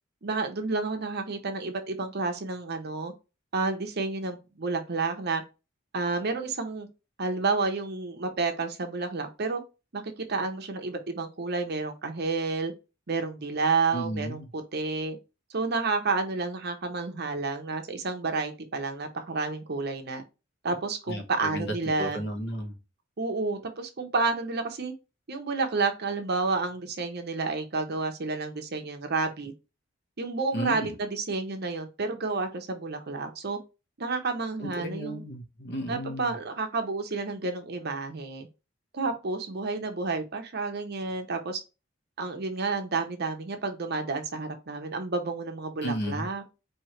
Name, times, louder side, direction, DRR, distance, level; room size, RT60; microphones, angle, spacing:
voice 1, 0.2-3.1 3.5-5.4 5.9-6.9 7.2-9.6 9.9-12.7 13.1-15.2 15.5-20.2 20.6-22.2 23.2-24.9 25.3-29.5 30.2-33.6 34.0-35.2 35.9-38.5 38.9-41.6 42.2-46.4, right 3 dB, 55° right, 0.8 m, -30 dB
voice 2, 13.9-14.5 21.1-22.7 30.5-30.9 34.6-36.3 45.8-46.3, equal, 60° left, 1.1 m, -34 dB
4.6 x 2.8 x 3.0 m
head